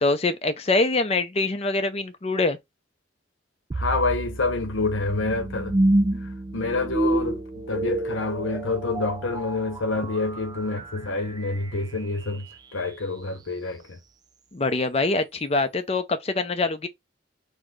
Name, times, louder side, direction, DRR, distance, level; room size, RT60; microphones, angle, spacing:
voice 1, 0.0-2.6 14.5-16.9, left 3 dB, 30° left, 0.5 m, -24 dB
voice 2, 3.7-5.8 6.5-14.0, left 3 dB, 85° left, 0.8 m, -27 dB
sound 1, 3.7-12.8, right 1 dB, 20° right, 0.3 m, -29 dB
4.1 x 2.2 x 4.6 m
head